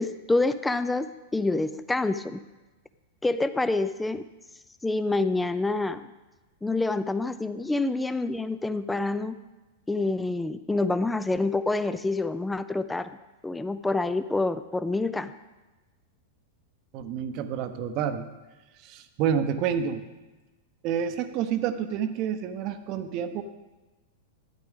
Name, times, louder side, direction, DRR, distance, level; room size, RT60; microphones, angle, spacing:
voice 1, 0.0-2.4 3.2-4.2 4.8-6.1 6.6-9.4 9.9-13.1 13.4-15.3, left 2 dB, 5° left, 12 dB, 0.4 m, -27 dB
voice 2, 16.9-18.3 18.8-20.0 20.8-23.4, right 8 dB, 40° right, 10 dB, 0.8 m, -29 dB
12.5 x 10.0 x 3.6 m, 1.1 s
figure-of-eight pair, 95°, 0 cm